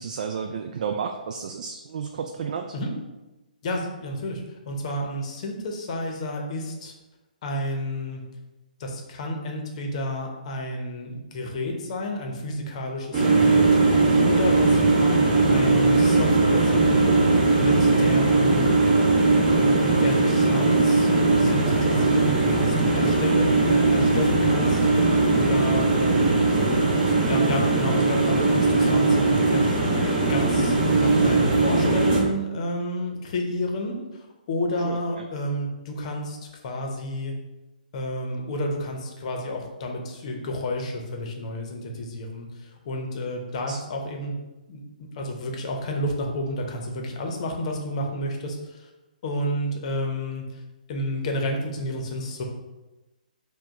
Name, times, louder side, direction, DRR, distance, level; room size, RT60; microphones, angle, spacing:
voice 1, 0.0-2.7 34.8-35.0 43.7-43.8, right 6 dB, 55° right, 4 dB, 0.3 m, -31 dB
voice 2, 3.6-6.9 7.4-8.2 8.8-18.7 19.5-21.1 21.4-26.5 27.2-30.0 30.3-36.4 36.6-37.3 37.9-44.4 44.7-48.9 49.2-50.6 50.9-52.4, left 1 dB, 45° left, 2 dB, 0.8 m, -31 dB
sound 1, 13.1-32.2, right 3 dB, 25° right, 1.2 m, -20 dB
4.9 x 2.2 x 3.6 m, 1.1 s
hypercardioid pair, 145°, 5 cm